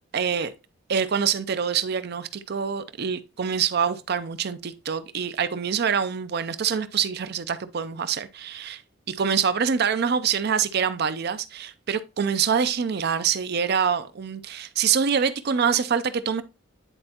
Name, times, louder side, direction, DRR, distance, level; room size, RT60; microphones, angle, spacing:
voice 1, 0.1-0.5 0.9-8.8 9.1-16.4, right 7 dB, 50° right, 0.5 m, -25 dB
9.8 x 4.2 x 2.9 m
head